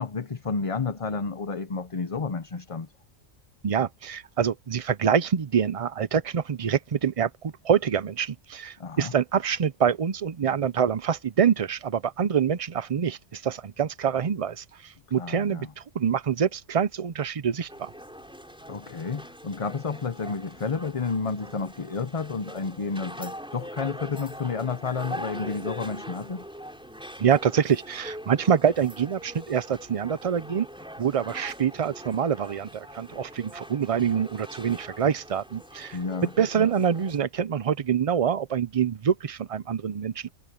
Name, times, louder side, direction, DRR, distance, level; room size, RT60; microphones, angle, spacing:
voice 1, 0.0-2.9 8.8-9.2 15.1-15.7 18.7-26.5 35.9-36.7, left 4 dB, 35° left, 0.8 m, -31 dB
voice 2, 3.6-7.3 7.6-14.6 15.1-15.7 15.9-17.9 27.2-30.7 31.0-36.0 36.4-40.3, right 7 dB, 40° right, 0.5 m, -25 dB
sound 1, 17.7-37.2, equal, 5° right, 5.1 m, -42 dB
omnidirectional pair, 1.2 m